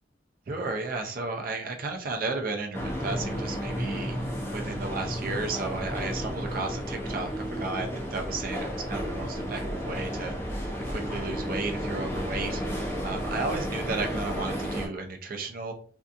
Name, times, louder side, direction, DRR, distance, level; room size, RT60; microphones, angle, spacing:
voice 1, 0.5-4.2 4.5-10.3 10.9-12.6 13.0-15.7, right 3 dB, 50° right, 3 dB, 0.5 m, -33 dB
sound 1, 2.7-14.9, equal, 15° left, 0.4 m, -32 dB
2.6 x 2.3 x 2.5 m, 0.43 s
head